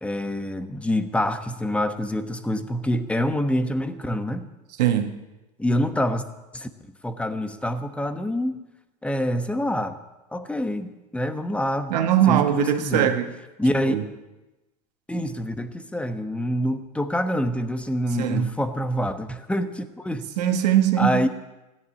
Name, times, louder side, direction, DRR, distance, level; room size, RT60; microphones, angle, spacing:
voice 1, 0.0-4.5 5.6-6.2 6.5-6.7 7.0-8.6 9.0-10.0 10.3-11.9 12.3-13.1 13.6-13.9 15.1-20.3 21.0-21.3, equal, 5° left, 10 dB, 1.2 m, -26 dB
voice 2, 4.8-5.1 11.9-13.3 13.9-14.0 18.2-18.4 20.4-21.3, right 11 dB, 75° right, 6 dB, 1.8 m, -21 dB
14.5 x 11.0 x 8.5 m, 1.0 s
hypercardioid pair, 105°, 21 cm